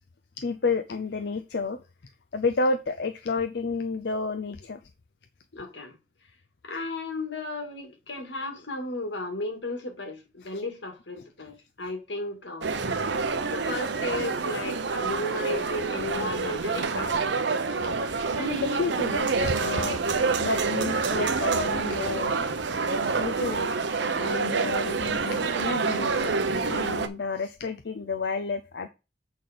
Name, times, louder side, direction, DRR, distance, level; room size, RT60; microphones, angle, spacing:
voice 1, 0.4-1.8 2.3-4.8 10.5-10.6 17.8-17.9 18.2-20.0 20.4-22.5 23.2-23.7 24.0-28.9, left 4 dB, 70° left, 0.6 m, -31 dB
voice 2, 5.5-6.0 6.6-12.7 13.5-17.3, left 2 dB, 90° left, 2.1 m, -34 dB
sound 1, 12.6-27.1, right 4 dB, 80° right, 0.7 m, -27 dB
7.7 x 4.4 x 5.1 m
head